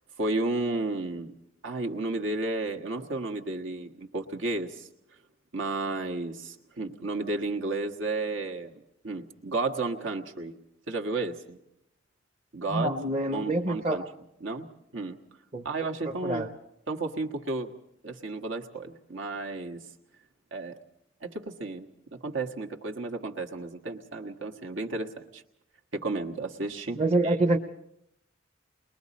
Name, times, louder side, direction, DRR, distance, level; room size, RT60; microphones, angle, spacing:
voice 1, 0.2-1.3 1.6-4.9 5.5-8.7 9.0-10.6 10.9-11.6 12.5-12.9 13.3-14.0 14.4-14.7 14.9-15.2 15.6-16.5 16.9-17.7 18.0-19.9 20.5-20.8 21.2-25.4 25.9-27.3, right 2 dB, 75° right, 2 dB, 1.5 m, -32 dB
voice 2, 12.7-14.0 15.5-15.7 16.2-16.5 26.9-27.6, right 2 dB, 30° right, 2 dB, 0.8 m, -26 dB
29.5 x 22.0 x 4.2 m, 0.79 s
head